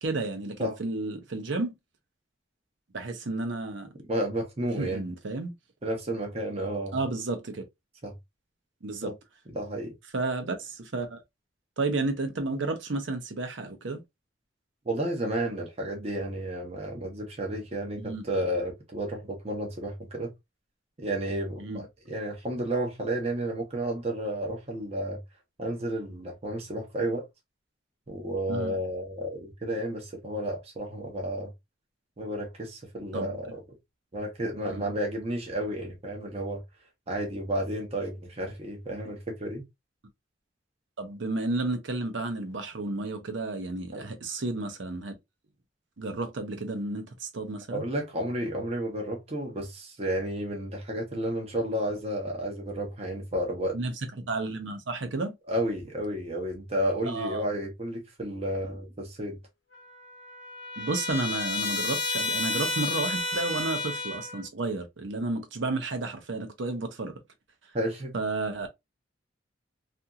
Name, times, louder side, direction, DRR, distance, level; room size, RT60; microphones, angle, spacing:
voice 1, 0.0-1.7 2.9-3.9 4.8-5.5 6.9-7.6 8.8-9.1 10.1-11.2 11.8-14.0 18.0-18.2 21.6-21.8 28.5-28.7 33.1-33.4 34.7-34.8 41.0-45.2 46.0-47.9 53.7-55.3 57.1-57.4 60.8-67.1 68.1-68.7, right 2 dB, 65° right, 0.7 m, -32 dB
voice 2, 4.0-5.0 5.8-7.0 8.0-8.2 9.0-9.1 9.5-9.9 14.9-20.3 21.0-25.2 25.6-27.3 28.1-31.5 32.2-33.6 34.1-36.6 37.1-39.7 43.9-44.1 47.7-53.8 55.5-59.4 67.7-68.1, right 1 dB, 30° right, 0.7 m, -32 dB
Trumpet, 59.7-64.4, left 3 dB, 70° left, 0.8 m, -31 dB
2.7 x 2.6 x 2.3 m
head